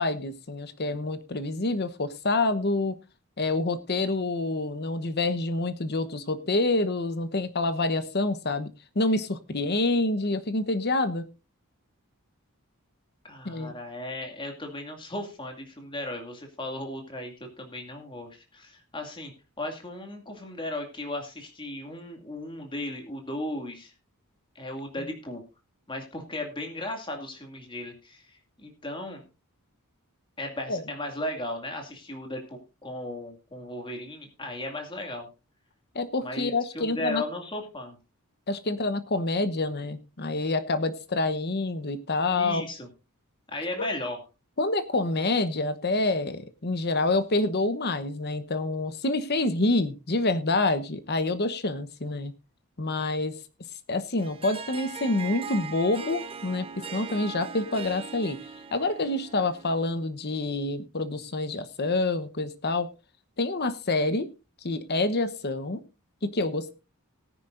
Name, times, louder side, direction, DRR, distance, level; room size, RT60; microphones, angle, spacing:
voice 1, 0.0-2.9 3.4-11.3 13.4-13.7 30.7-30.8 35.9-37.2 38.5-42.6 43.8-43.9 44.6-52.3 52.8-53.3 53.9-56.7 56.9-58.4 58.7-62.9 63.4-64.3 64.6-65.8 66.2-66.7, left 2 dB, 45° left, 12 dB, 1.0 m, -27 dB
voice 2, 13.2-19.3 19.6-23.9 24.6-25.4 25.9-29.2 30.4-35.3 36.2-38.0 42.4-42.9 43.5-44.2, left 1 dB, 20° left, 3 dB, 2.3 m, -36 dB
Harp, 54.2-60.0, right 6 dB, 25° right, 0.7 m, -40 dB
18.0 x 9.9 x 2.6 m, 0.29 s
head